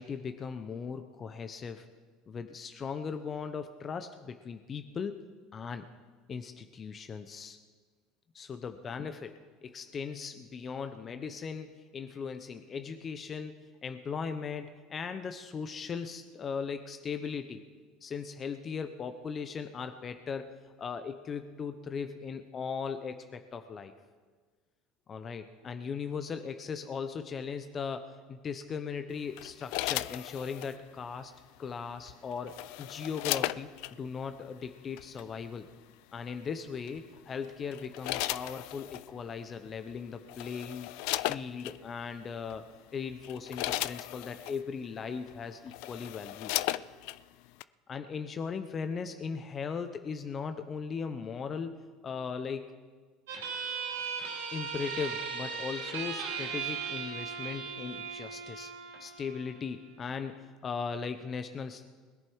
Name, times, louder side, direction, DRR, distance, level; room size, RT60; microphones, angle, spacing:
voice 1, 0.0-1.9 2.3-5.2 5.5-5.9 6.3-7.6 8.3-17.6 18.0-23.9 25.1-31.3 31.6-33.7 34.0-35.7 36.1-42.6 42.9-46.5 47.9-52.7 54.5-58.7 59.0-61.8, left 6 dB, 35° left, 8 dB, 0.9 m, -38 dB
sound 1, 29.4-30.7 32.1-33.9 35.0-35.2 36.9-37.2 37.7-39.1 39.9-40.0 40.3-41.8 42.5-42.7 43.1-44.6 45.3-45.4 45.7-47.2 47.6-47.7, left 18 dB, 70° left, 0.4 m, -35 dB
sound 2, 53.3-60.3, right 6 dB, 85° right, 3.1 m, -38 dB
21.0 x 10.5 x 4.7 m, 1.5 s
hypercardioid pair, 85°, 0 cm